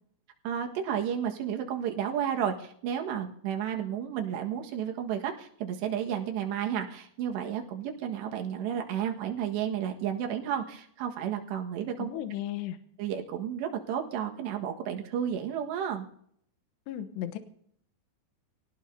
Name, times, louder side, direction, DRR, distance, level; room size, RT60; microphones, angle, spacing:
voice 1, 0.5-12.1 13.0-16.1, right 9 dB, 75° right, 3 dB, 3.7 m, -32 dB
voice 2, 12.0-12.8 16.9-17.4, left 12 dB, 80° left, 8 dB, 3.0 m, -35 dB
26.5 x 18.0 x 2.8 m, 0.66 s
omnidirectional pair, 5.1 m